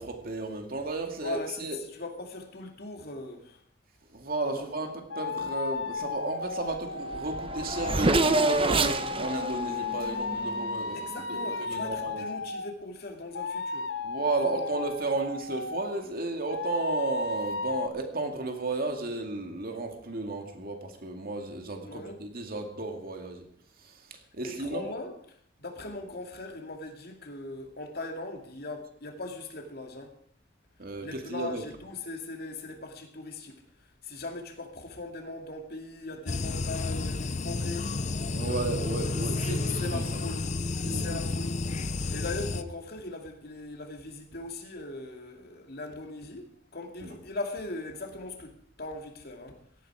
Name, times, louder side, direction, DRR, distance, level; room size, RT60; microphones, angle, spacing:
voice 1, 0.0-1.8 4.1-12.2 14.0-23.5 23.8-24.9 30.8-31.6 38.3-40.2 40.8-41.2 47.0-47.1, right 3 dB, 55° right, 2.4 m, -33 dB
voice 2, 1.2-3.6 4.5-4.7 10.9-14.0 14.4-14.7 21.8-22.2 24.4-25.1 25.6-30.2 31.0-38.3 39.4-41.5 42.1-49.6, left 2 dB, 60° left, 2.6 m, -39 dB
sound 1, 5.1-12.7 13.3-16.0 16.5-17.9, left 4 dB, 75° left, 1.1 m, -34 dB
Race car auto racing / Accelerating revving vroom, 6.7-6.8 7.0-11.0, right 2 dB, 30° right, 0.9 m, -28 dB
sound 2, 36.3-42.6, left 3 dB, 40° left, 0.7 m, -31 dB
17.0 x 13.5 x 4.9 m
head